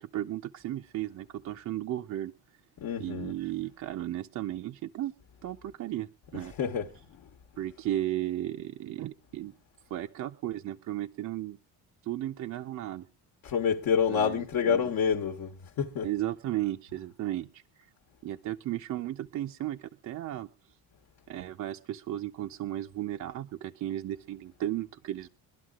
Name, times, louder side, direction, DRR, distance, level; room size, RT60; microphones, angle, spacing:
voice 1, 0.0-2.3 3.0-5.1 5.4-6.5 7.6-9.5 9.9-11.6 12.0-13.1 14.1-14.9 16.0-17.9 18.2-20.5 21.3-25.3, right 13 dB, 50° right, 0.6 m, -35 dB
voice 2, 2.8-3.3 6.4-7.0 13.4-16.1, left 7 dB, 60° left, 1.2 m, -28 dB
23.5 x 12.0 x 2.4 m
cardioid pair, 145°, 38 cm